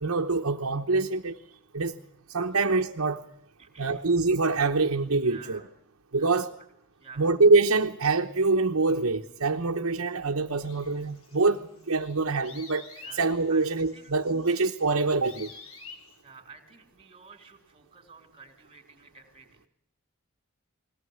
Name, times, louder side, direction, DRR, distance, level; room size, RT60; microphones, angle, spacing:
voice 1, 0.0-1.4 1.7-2.0 2.3-3.2 3.8-5.6 6.1-6.5 7.2-12.8 13.1-15.5, right 3 dB, 75° right, 1.0 m, -25 dB
voice 2, 3.6-4.0 5.2-5.7 6.2-6.3 6.6-6.7 7.0-7.3 13.0-13.7 13.9-14.1 16.2-19.7, right 5 dB, 25° right, 3.4 m, -51 dB
sound 1, 10.6-16.2, left 4 dB, 85° left, 5.4 m, -50 dB
21.0 x 17.5 x 8.0 m
head